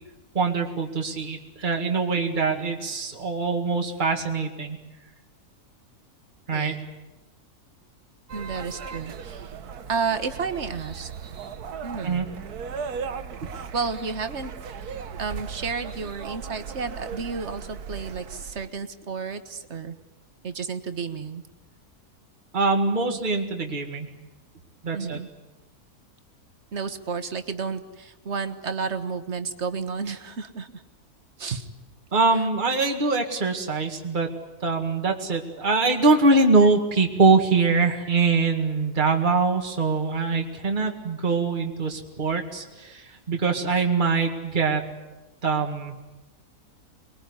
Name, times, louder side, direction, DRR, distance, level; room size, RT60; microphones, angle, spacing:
voice 1, 0.3-4.8 6.5-6.7 12.0-12.3 13.4-13.5 22.5-24.1 24.8-25.2 32.1-34.3 34.6-44.9 45.4-45.9, right 4 dB, 30° right, 3 dB, 2.2 m, -23 dB
voice 2, 6.5-6.8 8.3-9.5 9.9-11.3 11.8-12.3 13.7-14.5 14.8-20.0 20.4-21.4 24.9-25.3 26.7-30.8 31.4-31.7 32.3-32.4 41.3-41.4, right 5 dB, 45° right, 9 dB, 1.7 m, -32 dB
sound 1, 8.3-18.7, right 6 dB, 75° right, 1.6 m, -37 dB
25.0 x 21.5 x 9.7 m, 1.1 s
omnidirectional pair, 1.6 m